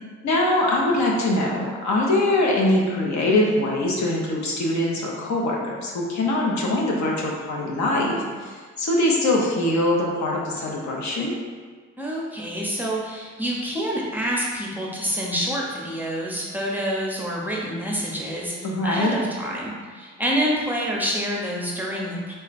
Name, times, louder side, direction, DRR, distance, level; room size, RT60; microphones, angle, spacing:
voice 1, 0.2-11.3 18.6-19.1, left 1 dB, 65° left, -2 dB, 0.8 m, -23 dB
voice 2, 12.0-22.3, equal, 5° right, -4 dB, 0.7 m, -27 dB
3.6 x 2.1 x 4.1 m, 1.5 s
cardioid pair, 90°, 30 cm